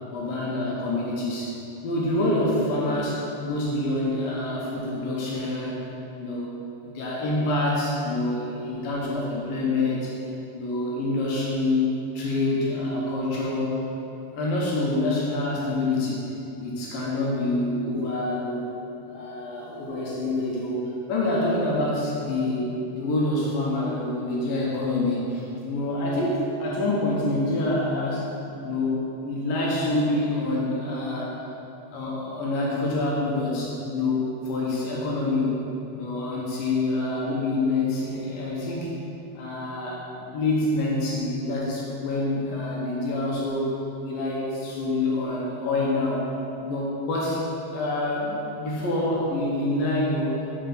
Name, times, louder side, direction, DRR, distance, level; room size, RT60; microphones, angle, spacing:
voice 1, 0.1-1.5 1.8-5.8 6.2-6.5 6.8-10.1 10.5-11.9 12.1-13.8 14.3-16.3 16.6-18.7 19.1-20.8 21.1-22.7 22.9-28.2 28.6-31.4 31.9-35.6 35.9-38.9 39.4-43.7 44.0-46.3 46.6-47.5 47.7-50.4, left 2 dB, 70° left, -4 dB, 2.4 m, -26 dB
7.3 x 4.4 x 5.9 m, 2.9 s
omnidirectional pair, 4.9 m